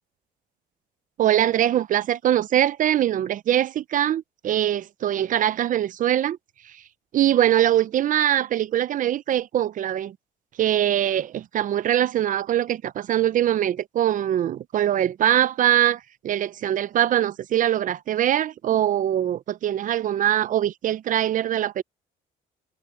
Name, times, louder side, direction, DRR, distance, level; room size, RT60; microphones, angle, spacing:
voice 1, 1.2-6.4 7.1-10.1 10.6-21.8, right 11 dB, 50° right, 0.6 m, -22 dB
cardioid pair, 110°, 17 cm